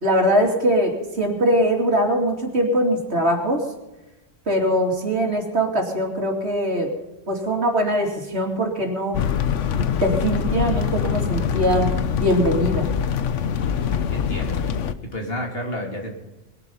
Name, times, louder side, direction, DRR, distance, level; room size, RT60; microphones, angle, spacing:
voice 1, 0.0-3.6 4.5-6.9 7.3-9.2 9.7-12.9, equal, 60° right, 2 dB, 3.0 m, -22 dB
sound 1, 9.1-14.9, left 8 dB, 80° left, 1.2 m, -24 dB
voice 2, 14.1-14.6 15.1-16.1, left 1 dB, 55° left, 1 dB, 3.2 m, -30 dB
21.5 x 11.0 x 5.6 m, 1.1 s
omnidirectional pair, 1.2 m